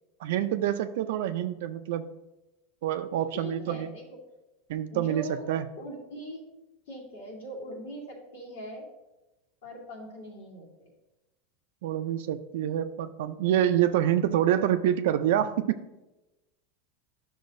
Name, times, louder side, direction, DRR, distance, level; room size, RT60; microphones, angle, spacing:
voice 1, 0.2-2.2 2.8-3.9 4.7-5.7 11.8-15.8, right 11 dB, 75° right, 9 dB, 0.3 m, -27 dB
voice 2, 3.3-4.0 4.9-5.5 5.8-6.4 6.9-8.9 9.6-10.9, equal, 80° left, -3 dB, 2.4 m, -41 dB
10.5 x 6.1 x 2.6 m, 1.0 s
supercardioid pair, 120°, 0 cm